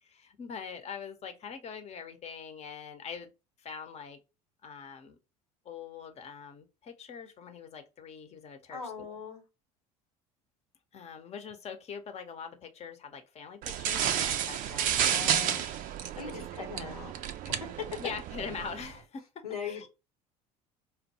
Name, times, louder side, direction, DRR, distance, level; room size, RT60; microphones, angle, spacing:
voice 1, 0.0-3.3 3.6-4.2 4.6-5.2 5.6-8.9 10.9-15.7 16.2-16.5 16.8-17.0 18.0-19.9, left 6 dB, 35° left, 0.8 m, -43 dB
voice 2, 8.7-9.4 15.0-15.6 16.2-17.1 17.5-17.6 19.4-19.9, left 5 dB, 90° left, 1.0 m, -40 dB
sound 1, 13.6-18.9, right 9 dB, 45° right, 0.4 m, -31 dB
4.4 x 2.2 x 2.8 m
figure-of-eight pair, 65°, 19 cm